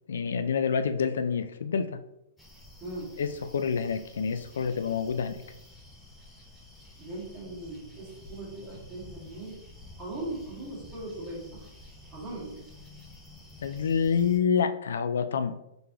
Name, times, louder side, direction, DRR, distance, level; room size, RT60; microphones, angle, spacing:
voice 1, 0.1-2.0 3.2-5.4 13.6-15.5, left 6 dB, 90° left, 9 dB, 0.3 m, -27 dB
sound 1, 2.4-14.4, left 2 dB, 5° left, 0.6 m, -50 dB
voice 2, 2.8-3.2 7.0-9.6 10.0-11.7 12.1-12.6, right 2 dB, 15° right, -6 dB, 1.5 m, -39 dB
3.9 x 3.4 x 2.9 m, 0.84 s
hypercardioid pair, 165°, 0 cm